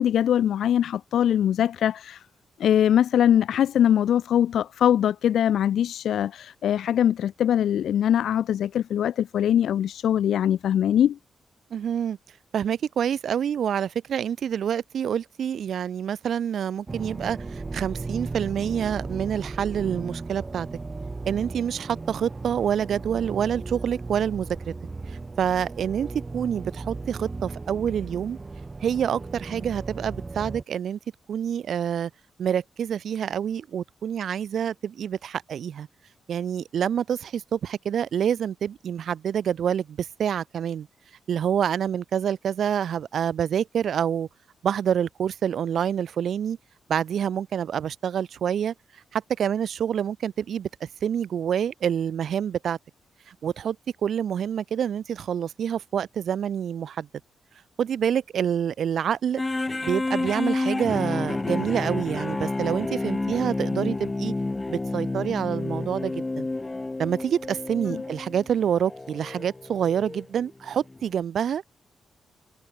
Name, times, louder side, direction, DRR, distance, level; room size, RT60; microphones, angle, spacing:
voice 1, 0.0-2.3 2.6-11.2 67.9-68.0, left 10 dB, 85° left, 0.7 m, -22 dB
voice 2, 11.7-12.2 12.5-20.7 21.3-24.5 25.1-28.4 28.8-31.0 31.3-32.1 32.4-35.9 36.3-40.9 41.3-44.3 44.6-46.6 46.9-48.7 49.1-52.8 53.3-53.8 54.0-57.1 57.8-59.4 59.8-64.3 64.7-66.5 67.0-71.6, right 8 dB, 65° right, 3.7 m, -27 dB
sound 1, 16.9-30.6, right 3 dB, 20° right, 7.3 m, -36 dB
sound 2, 59.4-70.3 70.9-71.0, left 2 dB, 15° left, 1.6 m, -30 dB
wide cardioid pair, 160°, 0 cm